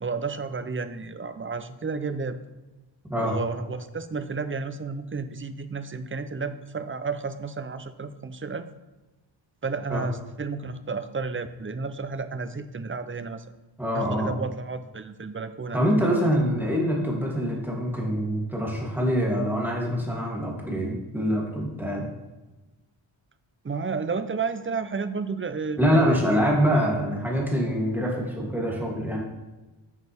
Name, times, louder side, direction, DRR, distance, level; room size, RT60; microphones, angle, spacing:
voice 1, 0.0-2.4 3.2-8.7 9.6-13.4 13.9-16.3 23.6-26.4 26.7-26.9, right 4 dB, 25° right, 11 dB, 0.6 m, -32 dB
voice 2, 13.8-14.4 15.7-22.0 25.8-29.2, equal, 5° right, -3 dB, 2.9 m, -25 dB
11.0 x 6.4 x 3.6 m, 1.1 s
wide cardioid pair, 65°, 49 cm